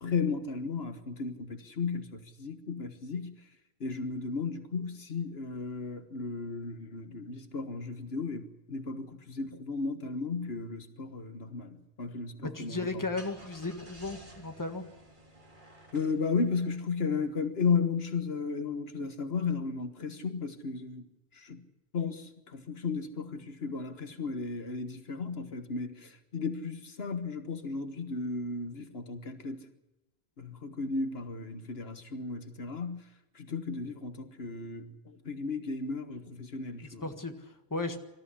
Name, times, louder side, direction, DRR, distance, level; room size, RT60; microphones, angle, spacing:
voice 1, 0.0-3.4 3.8-12.9 15.9-21.0 21.3-21.6 21.9-29.6 30.4-33.0 33.3-37.0, left 4 dB, 75° left, 1.6 m, -34 dB
voice 2, 12.4-14.8 36.8-38.0, left 3 dB, 20° left, 1.7 m, -35 dB
Car / Engine starting, 12.8-17.4, right 1 dB, 50° right, 3.6 m, -54 dB
24.5 x 14.0 x 9.8 m
omnidirectional pair, 1.1 m